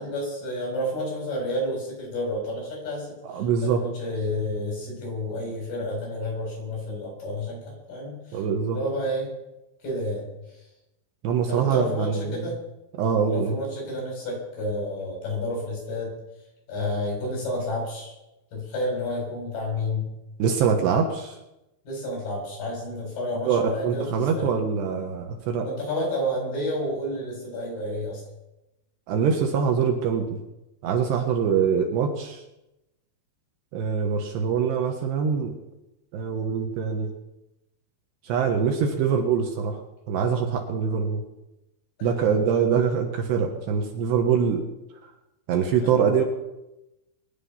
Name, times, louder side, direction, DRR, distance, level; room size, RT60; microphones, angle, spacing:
voice 1, 0.0-8.4 8.7-9.3 9.8-10.3 11.5-12.6 13.3-16.1 16.7-18.1 18.5-20.1 21.9-24.5 25.6-28.2 38.8-39.0 42.0-42.1 45.8-46.0, left 1 dB, 50° left, -2 dB, 9.4 m, -30 dB
voice 2, 3.2-3.8 8.3-8.8 11.2-12.5 13.0-13.6 20.4-21.4 23.5-25.7 29.1-30.4 30.8-32.4 33.7-35.5 36.1-37.1 38.2-39.8 40.1-41.2 42.0-44.7 45.5-46.2, right 6 dB, 70° right, 4 dB, 3.2 m, -24 dB
23.0 x 10.5 x 5.8 m, 0.94 s
omnidirectional pair, 5.5 m